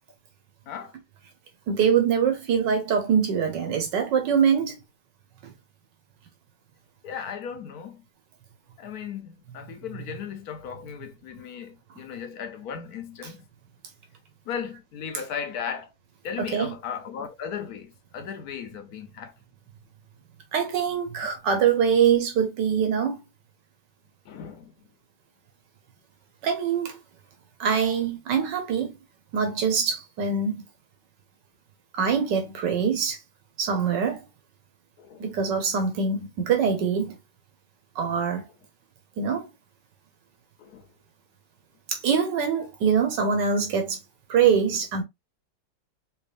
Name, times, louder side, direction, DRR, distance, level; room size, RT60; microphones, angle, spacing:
voice 1, 0.7-1.0 7.0-8.0 8.8-13.4 14.5-15.9 16.2-19.3 24.3-24.7 35.0-35.2 40.6-40.9, left 7 dB, 65° left, 1.2 m, -36 dB
voice 2, 1.7-4.8 5.4-5.5 9.9-10.0 16.4-16.7 20.5-23.2 26.4-27.0 27.6-28.9 29.3-30.6 32.0-33.2 33.6-34.2 35.2-37.2 38.0-38.5 39.2-39.4 41.9-44.0 44.3-45.0, right 7 dB, 85° right, 1.6 m, -24 dB
4.5 x 2.9 x 2.4 m
omnidirectional pair, 1.8 m